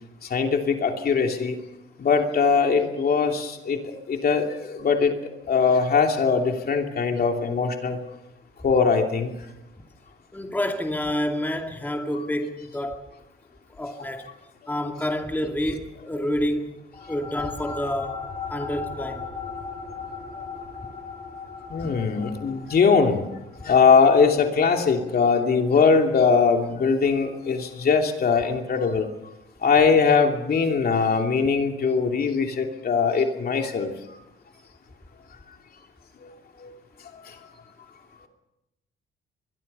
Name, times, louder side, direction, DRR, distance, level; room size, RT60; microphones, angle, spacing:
voice 1, 0.2-1.6 2.0-5.1 5.5-8.0 8.6-9.3 14.0-14.1 21.7-23.2 23.6-29.1 29.6-34.2 36.2-36.3 36.6-36.7 37.2-37.4, left 5 dB, 50° left, 3 dB, 2.8 m, -21 dB
voice 2, 10.3-13.0 13.8-14.3 14.7-16.8 17.1-19.3 21.8-22.0, left 1 dB, 10° left, 3 dB, 2.4 m, -28 dB
sound 1, 16.9-27.7, left 5 dB, 25° left, 4.8 m, -39 dB
23.5 x 22.0 x 5.6 m, 0.91 s
cardioid pair, 90°, 20 cm